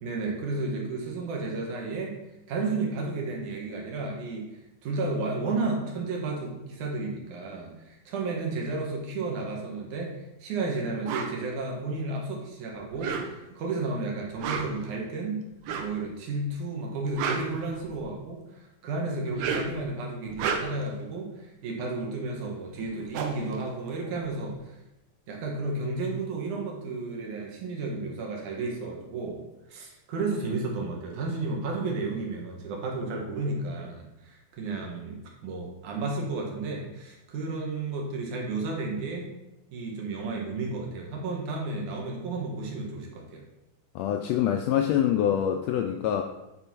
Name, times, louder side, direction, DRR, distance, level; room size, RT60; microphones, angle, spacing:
voice 1, 0.0-2.2 2.5-4.5 4.8-15.4 15.8-24.8 25.3-29.4 29.7-39.3 39.7-43.4, right 3 dB, 85° right, 0 dB, 2.8 m, -32 dB
sound 1, 11.1-11.3 12.9-13.6 14.3-14.9 15.6-16.0 16.9-18.2 19.2-19.8 20.2-20.9 22.5-22.6 22.8-24.5, right 5 dB, 70° right, 1.9 m, -32 dB
voice 2, 43.9-46.2, left 10 dB, 85° left, 4 dB, 1.5 m, -25 dB
8.8 x 4.2 x 4.5 m, 0.94 s
omnidirectional pair, 3.5 m